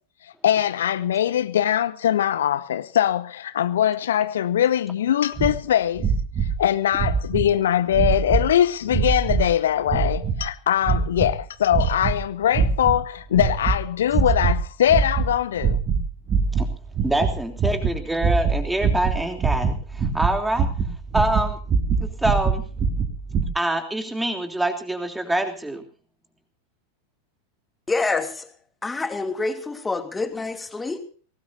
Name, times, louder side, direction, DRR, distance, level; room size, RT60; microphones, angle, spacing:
voice 1, 0.2-6.1 6.6-15.8, left 10 dB, 60° left, 0.8 m, -22 dB
sound 1, 5.4-5.5 6.0-6.6 6.9-7.5 7.9-8.5 8.9-9.5 9.9-10.5 10.8-11.3 11.7-12.2 12.5-13.0 13.3-13.8 14.1-14.6 14.9-15.3 15.6-16.0 16.3-23.4, right 5 dB, 30° right, 3.1 m, -23 dB
voice 2, 17.0-20.7 21.1-21.6 22.0-22.6 23.5-25.8, right 1 dB, 5° right, 3.2 m, -25 dB
voice 3, 27.9-28.5 28.8-31.0, left 3 dB, 10° left, 2.7 m, -27 dB
23.0 x 18.5 x 2.7 m
figure-of-eight pair, 90°, 0 cm